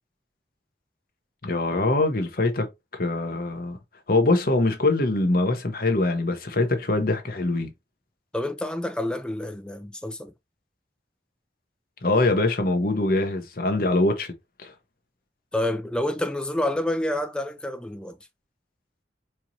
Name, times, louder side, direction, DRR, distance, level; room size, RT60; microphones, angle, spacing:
voice 1, 1.4-3.8 4.1-7.7 12.0-14.3 14.6-14.7, left 2 dB, 55° left, 1.0 m, -23 dB
voice 2, 8.3-10.3 15.5-18.2, left 1 dB, 5° left, 0.4 m, -28 dB
4.5 x 2.9 x 2.7 m
head